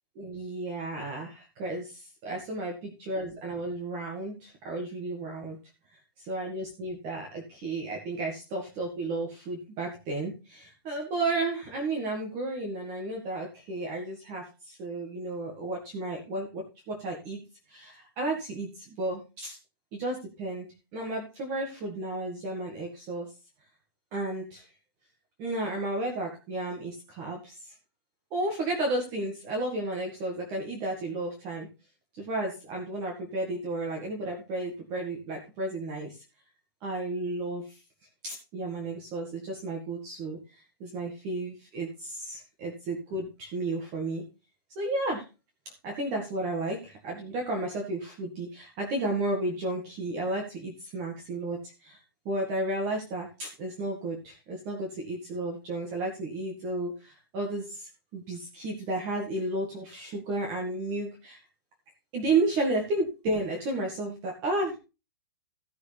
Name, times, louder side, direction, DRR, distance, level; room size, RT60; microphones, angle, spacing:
voice 1, 0.2-5.6 6.3-17.4 17.7-19.6 19.9-20.7 20.9-23.3 24.1-24.6 25.4-27.7 28.3-31.7 32.1-36.2 36.8-37.8 38.2-44.2 44.8-45.2 45.8-52.0 52.3-61.4 62.1-64.8, right 2 dB, 25° right, 0 dB, 1.9 m, -33 dB
16.0 x 6.4 x 3.4 m, 0.29 s
hypercardioid pair, 175°, 12 cm